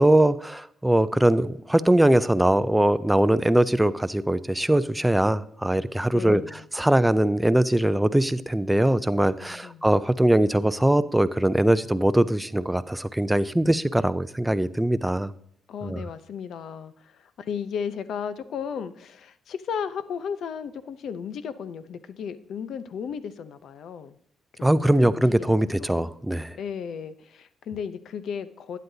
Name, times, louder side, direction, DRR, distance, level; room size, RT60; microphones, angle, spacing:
voice 1, 0.0-6.4 6.7-15.3 15.8-16.0 24.6-26.6, right 1 dB, 5° right, 13 dB, 0.5 m, -21 dB
voice 2, 6.1-6.6 9.4-9.9 15.7-24.2 24.6-26.1 26.6-28.8, left 7 dB, 70° left, 13 dB, 0.7 m, -35 dB
11.5 x 9.4 x 2.8 m, 0.68 s
cardioid pair, 90°, 0 cm